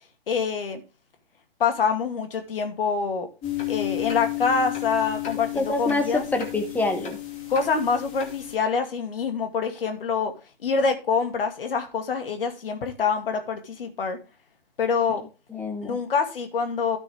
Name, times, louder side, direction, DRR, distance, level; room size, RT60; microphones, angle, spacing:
voice 1, 0.3-0.8 1.6-3.3 3.7-6.2 7.5-10.3 10.6-14.2 14.8-15.2 15.9-17.0, left 5 dB, 60° left, 6 dB, 2.4 m, -25 dB
sound 1, 3.4-8.5, left 15 dB, 20° left, 2.5 m, -32 dB
voice 2, 5.5-7.2 15.5-16.0, left 2 dB, 5° left, 5 dB, 1.1 m, -26 dB
13.0 x 6.1 x 3.6 m, 0.31 s
figure-of-eight pair, 130°, 31 cm